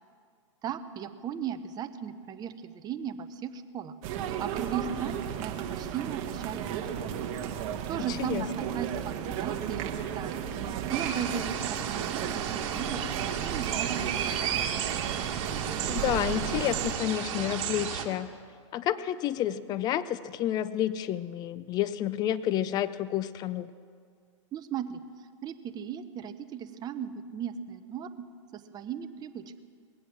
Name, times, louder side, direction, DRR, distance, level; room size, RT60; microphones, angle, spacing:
voice 1, 0.6-3.9 4.2-7.1 7.9-10.5 10.9-14.5 24.5-25.0 25.4-28.3 28.5-29.6, right 8 dB, 25° right, 10 dB, 0.8 m, -37 dB
sound 1, 4.0-16.9, right 9 dB, 40° right, 1.2 m, -34 dB
sound 2, 10.9-18.0, right 8 dB, 60° right, 1.8 m, -33 dB
voice 2, 15.9-18.3 18.7-23.7, left 11 dB, 25° left, 15 dB, 0.4 m, -30 dB
20.5 x 8.3 x 7.4 m, 2.2 s
hypercardioid pair, 130°, 17 cm